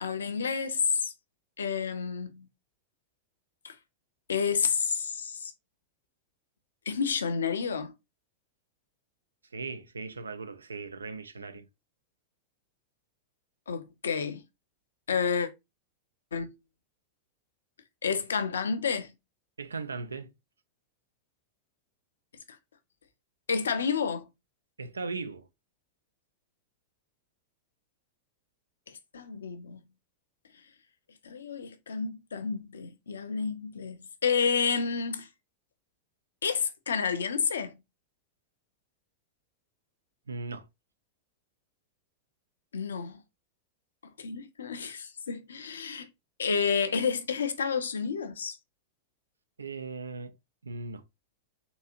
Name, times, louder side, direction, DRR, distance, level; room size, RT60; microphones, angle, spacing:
voice 1, 0.0-1.1 1.6-2.5 3.6-3.8 4.3-5.5 6.9-7.9 13.7-14.4 15.1-15.5 16.3-16.5 18.0-19.1 23.5-24.3 28.9-29.8 31.2-35.3 36.4-37.7 42.7-43.2 44.2-46.1 46.4-48.6, left 6 dB, 70° left, 0.5 m, -30 dB
voice 2, 9.5-11.7 19.6-20.3 24.8-25.5 40.3-40.7 49.6-50.4 50.6-51.0, right 4 dB, 75° right, 0.4 m, -38 dB
3.8 x 2.7 x 2.5 m
figure-of-eight pair, 90°, 0 cm